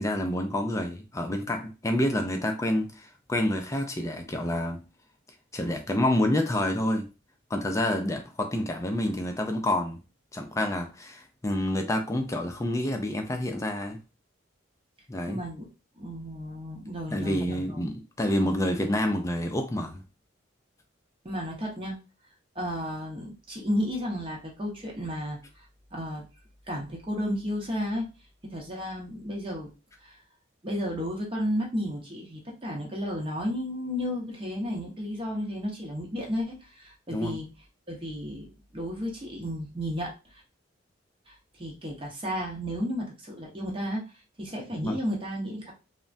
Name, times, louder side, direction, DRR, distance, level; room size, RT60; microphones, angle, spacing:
voice 1, 0.0-4.8 5.5-7.1 7.5-10.0 10.3-14.0 15.1-15.4 17.1-20.0 37.1-37.4 44.7-44.9, left 1 dB, 15° left, 0.3 m, -28 dB
voice 2, 15.3-15.7 16.0-17.8 21.2-22.0 22.5-25.4 25.9-26.2 26.7-28.1 28.4-29.7 30.0-30.2 30.6-37.5 37.9-40.4 41.3-44.0 44.4-45.7, equal, 25° right, 0.7 m, -33 dB
3.2 x 2.1 x 2.5 m
head